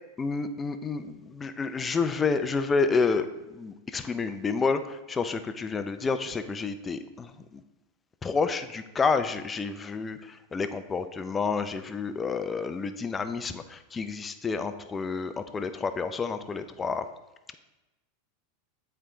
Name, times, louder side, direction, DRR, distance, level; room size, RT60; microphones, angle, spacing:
voice 1, 0.2-7.6 8.2-17.1, left 4 dB, 20° left, 10 dB, 0.5 m, -29 dB
8.1 x 4.5 x 3.8 m, 1.0 s
hypercardioid pair, 105°, 0 cm